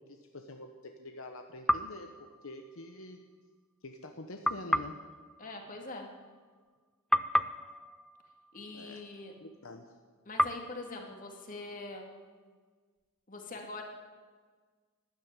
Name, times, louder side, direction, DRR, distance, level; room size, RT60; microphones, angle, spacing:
voice 1, 0.0-3.2 3.8-5.0 8.7-9.0 9.4-10.0, left 2 dB, 70° left, 5 dB, 1.0 m, -46 dB
sound 1, 1.7-3.0 4.4-6.8 7.1-9.4 10.4-12.2, equal, ahead, 0.4 m, -34 dB
voice 2, 5.4-6.1 8.5-9.3 10.3-12.1 13.3-13.8, left 2 dB, 40° left, 2 dB, 2.4 m, -43 dB
13.0 x 11.0 x 9.7 m, 1.5 s
head